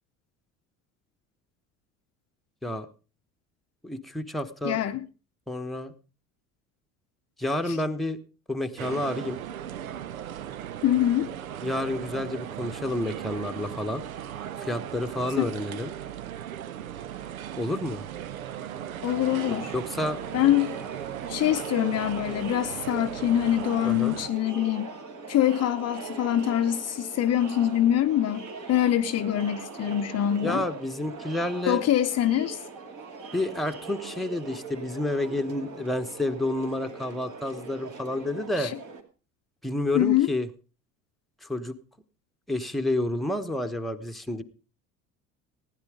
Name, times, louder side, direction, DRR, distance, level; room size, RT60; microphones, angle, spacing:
voice 1, 3.8-4.8 5.5-5.9 7.4-8.2 8.5-9.4 11.6-14.0 14.6-15.9 17.6-18.0 19.7-20.2 23.8-24.2 30.4-31.8 33.3-38.7 39.6-40.5 41.4-41.7 42.5-44.4, left 1 dB, ahead, 1.1 m, -29 dB
voice 2, 4.6-5.0 7.7-7.8 10.8-11.3 19.0-19.7 20.3-20.8 21.3-24.9 25.3-30.6 31.7-32.6 38.6-38.7 39.9-40.3, left 12 dB, 40° left, 0.7 m, -24 dB
sound 1, 8.8-24.3, right 10 dB, 80° right, 0.7 m, -37 dB
Crowd, 19.1-39.0, right 4 dB, 45° right, 2.5 m, -41 dB
16.5 x 9.9 x 5.0 m
figure-of-eight pair, 60°, 41 cm